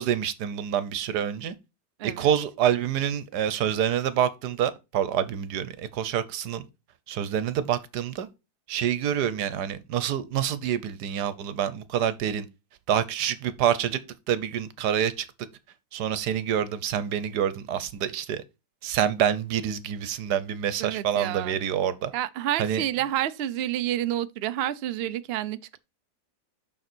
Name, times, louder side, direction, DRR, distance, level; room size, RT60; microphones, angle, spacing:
voice 1, 0.0-1.5 2.0-6.6 7.1-8.3 8.7-12.5 12.9-14.0 14.3-15.3 15.9-18.4 18.8-22.1 22.6-22.8, right 9 dB, 85° right, 1.4 m, -27 dB
voice 2, 2.0-2.3 20.8-21.6 22.1-25.8, right 12 dB, 65° right, 0.6 m, -29 dB
6.7 x 6.1 x 4.4 m
omnidirectional pair, 1.7 m